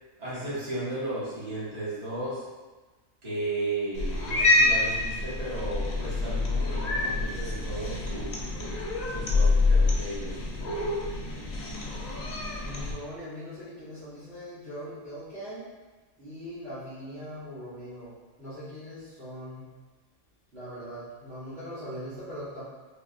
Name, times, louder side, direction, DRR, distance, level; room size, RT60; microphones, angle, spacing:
voice 1, 0.2-2.4 3.2-8.4 9.1-10.4, right 1 dB, 30° right, -11 dB, 1.3 m, -34 dB
Cat, 3.9-12.9, left 2 dB, 80° left, 0.3 m, -27 dB
voice 2, 12.5-15.6 16.2-18.1 18.4-19.7 20.5-22.6, equal, 50° right, -14 dB, 1.2 m, -40 dB
3.8 x 2.3 x 2.5 m, 1.3 s
omnidirectional pair, 1.4 m